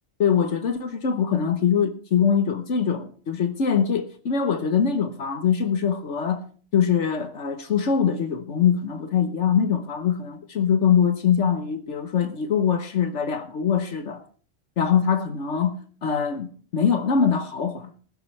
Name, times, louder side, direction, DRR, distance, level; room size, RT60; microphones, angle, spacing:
voice 1, 0.2-6.4 6.7-14.2 14.8-17.9, left 7 dB, 70° left, 1.4 m, -23 dB
19.5 x 11.5 x 3.3 m
omnidirectional pair, 1.3 m